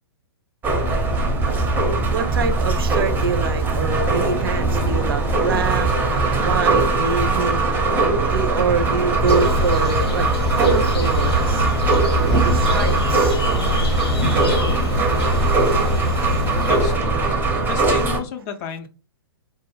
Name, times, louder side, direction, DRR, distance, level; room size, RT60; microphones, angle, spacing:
sound 1, 0.6-18.2, right 3 dB, 15° right, 0.5 m, -20 dB
voice 1, 2.1-11.7 12.2-13.4, right 4 dB, 65° right, 0.5 m, -25 dB
sound 2, 9.3-17.0, left 3 dB, 85° left, 0.8 m, -25 dB
voice 2, 16.7-17.2 17.7-18.9, left 7 dB, 40° left, 0.4 m, -32 dB
2.2 x 2.0 x 2.9 m
hypercardioid pair, 120°, 13 cm